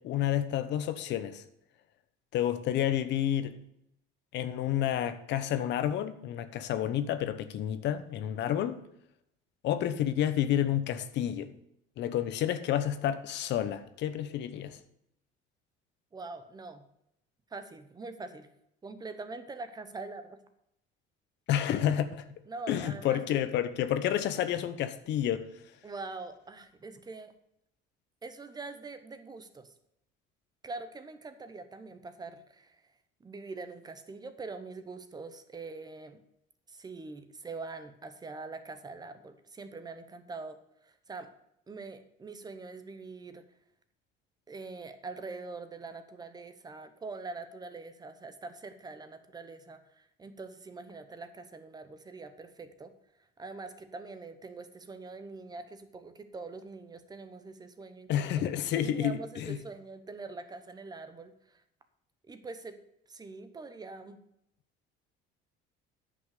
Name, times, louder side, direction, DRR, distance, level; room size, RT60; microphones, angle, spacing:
voice 1, 0.0-1.4 2.3-3.6 4.3-8.8 9.6-11.5 12.0-14.8 21.5-22.3 22.7-25.5 58.1-59.6, left 11 dB, 60° left, 0.9 m, -30 dB
voice 2, 16.1-16.8 17.5-18.5 18.8-20.4 22.5-23.2 25.8-27.3 28.2-29.7 30.6-32.7 33.2-36.2 36.7-40.6 40.8-41.3 41.7-43.4 44.5-52.9 53.4-58.4 58.7-61.3 62.3-62.8 63.1-64.2, right 3 dB, 20° right, 0.9 m, -43 dB
9.8 x 5.8 x 6.6 m
cardioid pair, 145°, 21 cm